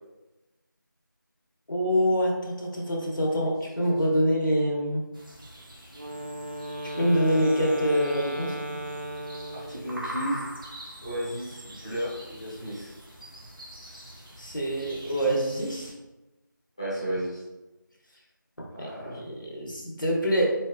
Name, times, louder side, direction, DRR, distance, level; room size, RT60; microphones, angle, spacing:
voice 1, 1.7-5.0 6.8-8.6 14.4-15.9 18.8-20.5, equal, 70° left, -1 dB, 1.1 m, -25 dB
sound 1, 5.1-15.9, equal, 80° right, 1.2 m, -44 dB
Wind instrument woodwind instrument, 5.9-10.0, right 1 dB, 35° right, 0.5 m, -36 dB
voice 2, 9.5-10.4 11.0-13.0 16.8-17.4 18.7-19.2, right 1 dB, 15° left, -11 dB, 0.7 m, -33 dB
4.5 x 3.7 x 2.3 m, 1.1 s
figure-of-eight pair, 175°, 11 cm